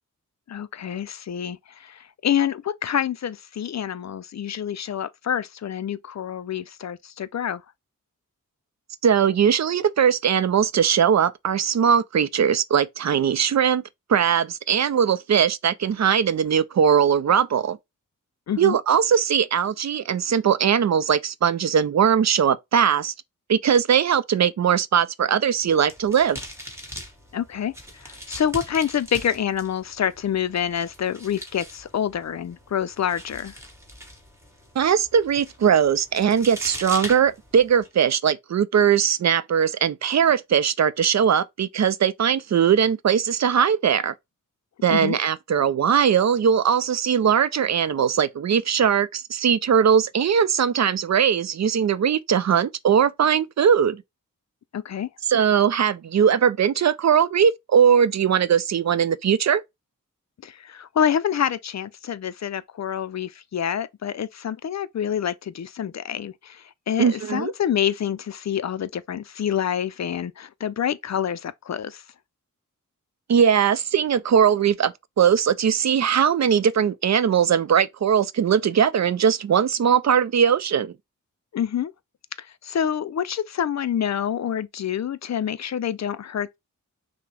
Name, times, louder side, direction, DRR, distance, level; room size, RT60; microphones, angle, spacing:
voice 1, 0.5-7.6 18.5-18.8 27.3-33.5 44.9-45.2 54.7-55.1 60.4-72.0 81.5-81.9 82.4-86.6, left 9 dB, 55° left, 0.4 m, -27 dB
voice 2, 9.0-13.8 14.1-17.8 18.6-23.1 23.5-26.4 34.8-44.1 44.8-54.0 55.3-59.6 67.0-67.5 73.3-80.9, right 8 dB, 55° right, 0.4 m, -20 dB
sound 1, 25.5-37.9, equal, 10° right, 1.4 m, -41 dB
5.9 x 2.1 x 3.2 m
wide cardioid pair, 75°, 33 cm